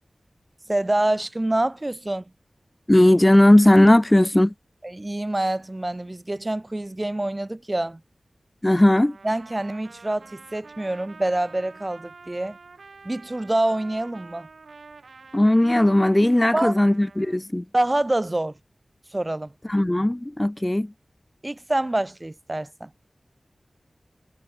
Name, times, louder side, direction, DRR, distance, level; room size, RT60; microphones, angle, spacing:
voice 1, 0.7-2.3 4.8-8.0 9.2-12.6 13.0-14.5 16.5-16.8 17.7-18.5 19.1-19.5 21.4-22.9, right 1 dB, 25° right, 2.9 m, -26 dB
voice 2, 2.9-4.5 8.6-9.2 15.3-17.6 19.7-20.9, left 1 dB, 15° left, 1.2 m, -17 dB
Trumpet, 9.0-17.4, right 4 dB, 80° right, 6.7 m, -47 dB
wide cardioid pair, 80°, 0 cm